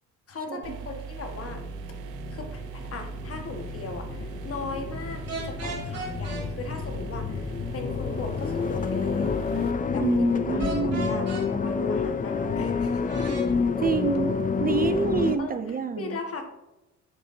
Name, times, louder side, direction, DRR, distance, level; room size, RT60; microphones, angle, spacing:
voice 1, 0.3-1.6 2.3-9.4 9.9-13.3 14.8-14.9 15.4-16.5, left 3 dB, 50° left, 3 dB, 1.6 m, -38 dB
sound 1, 0.6-9.7, right 7 dB, 85° right, 0.6 m, -39 dB
sound 2, 1.2-15.4, left 5 dB, 25° left, 0.6 m, -29 dB
sound 3, 5.3-6.4 10.6-11.5 13.1-13.5, right 2 dB, 55° right, 2.8 m, -35 dB
voice 2, 10.0-11.2 13.8-16.2, right 6 dB, 30° right, 10 dB, 0.5 m, -28 dB
10.0 x 6.5 x 2.7 m, 0.98 s
cardioid pair, 90°, 30 cm